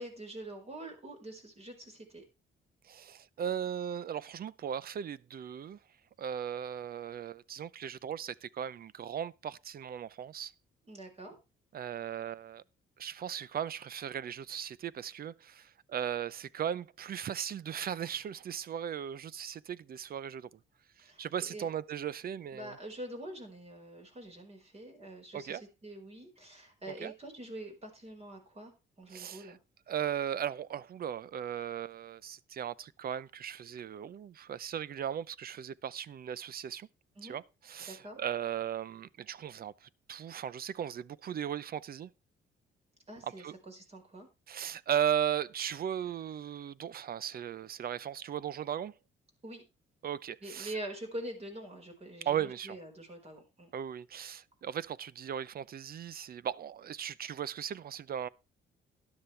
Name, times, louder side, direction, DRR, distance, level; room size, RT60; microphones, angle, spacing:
voice 1, 0.0-2.2 10.9-11.4 21.1-21.7 22.5-28.7 29.0-29.6 37.2-37.4 37.9-38.2 43.1-44.3 49.4-49.6 50.4-53.7, right 1 dB, 30° right, 4.7 m, -45 dB
voice 2, 2.9-5.8 6.2-10.5 11.7-12.6 13.0-20.5 21.0-22.7 25.3-25.6 26.9-27.1 29.1-29.5 29.9-36.9 37.2-42.1 43.2-43.5 44.5-48.9 50.0-50.7 52.3-52.8 53.7-58.3, right 9 dB, 50° right, 0.6 m, -37 dB
12.5 x 11.0 x 3.3 m
cardioid pair, 90°, 20 cm